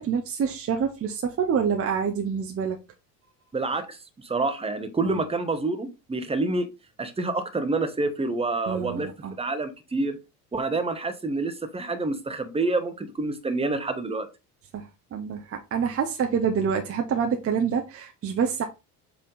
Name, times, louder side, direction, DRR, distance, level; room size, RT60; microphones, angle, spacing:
voice 1, 0.0-2.8 5.0-5.2 8.7-9.4 14.7-18.7, right 7 dB, 30° right, 1.0 m, -27 dB
voice 2, 3.5-6.7 7.0-9.1 9.4-10.2 10.5-14.3, right 3 dB, 10° right, 1.2 m, -28 dB
7.6 x 3.4 x 4.1 m
figure-of-eight pair, 65°, 46 cm